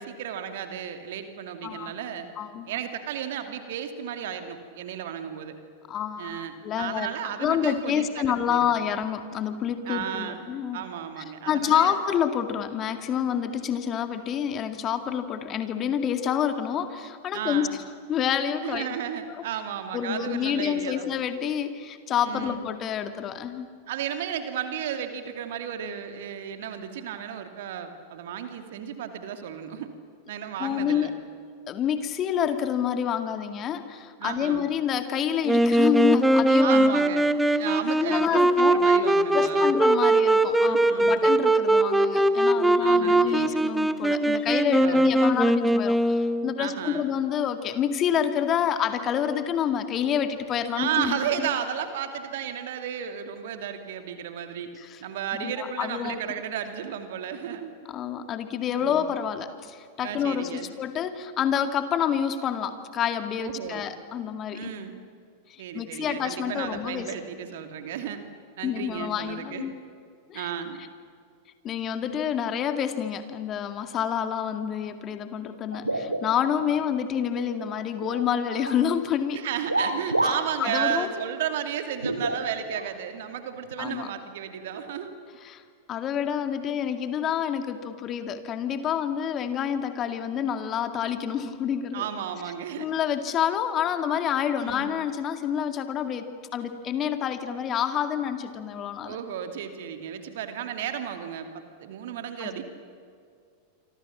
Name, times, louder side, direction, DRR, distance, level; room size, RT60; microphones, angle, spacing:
voice 1, 0.0-2.3 2.7-5.6 6.2-8.7 9.9-10.5 10.7-12.0 17.3-17.8 18.6-21.1 22.2-22.6 23.9-29.9 30.3-31.1 34.2-34.6 36.6-37.3 37.6-39.8 40.6-41.2 42.8-43.6 44.8-45.3 46.6-47.1 50.8-54.7 55.0-57.7 58.8-59.1 60.0-60.7 63.4-63.9 64.5-65.0 65.6-68.2 68.6-69.7 70.3-70.8 79.3-85.1 91.9-92.9 94.6-95.0 99.0-102.6, right 9 dB, 55° right, 7 dB, 2.7 m, -33 dB
voice 2, 2.4-2.7 5.9-7.1 7.4-10.8 11.2-17.7 18.1-18.9 19.4-19.5 19.9-23.8 30.6-31.1 31.7-36.8 37.5-37.6 38.0-38.8 39.3-51.5 54.8-55.0 55.4-56.2 57.9-64.7 65.5-67.1 68.6-69.7 70.3-70.5 71.6-79.4 80.6-81.1 83.8-84.1 85.4-85.6 85.9-92.1 92.8-99.2 102.4-102.6, left 9 dB, 30° left, 9 dB, 2.1 m, -28 dB
Wind instrument woodwind instrument, 35.5-46.6, right 1 dB, 5° right, 1.3 m, -21 dB
sound 1, 75.7-76.8 77.2-78.2 78.6-78.9 79.7-80.5 80.9-81.0 82.0-82.8 83.7-83.8 84.7-84.9, right 2 dB, 85° right, 1.9 m, -29 dB
28.5 x 25.0 x 7.4 m, 2.2 s
figure-of-eight pair, 90°, 0 cm